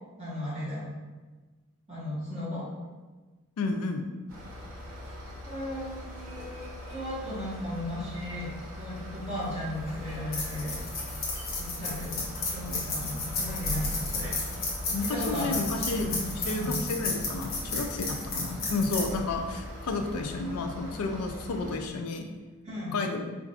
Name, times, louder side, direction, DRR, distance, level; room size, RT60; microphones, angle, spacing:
voice 1, 0.2-0.9 1.9-2.6 5.4-8.5 8.8-10.7 11.6-14.3 15.0-15.6 15.9-16.1 16.5-16.7 19.0-19.2 22.6-22.9, left 1 dB, 30° right, -11 dB, 1.1 m, -35 dB
voice 2, 3.6-4.1 14.9-16.1 16.5-22.2 22.9-23.3, left 3 dB, 85° left, 5 dB, 0.4 m, -31 dB
sound 1, 4.3-21.7, left 1 dB, 65° right, 0.9 m, -42 dB
sound 2, 9.8-20.2, left 3 dB, 40° left, 0.8 m, -34 dB
4.5 x 2.5 x 2.4 m, 1.3 s
head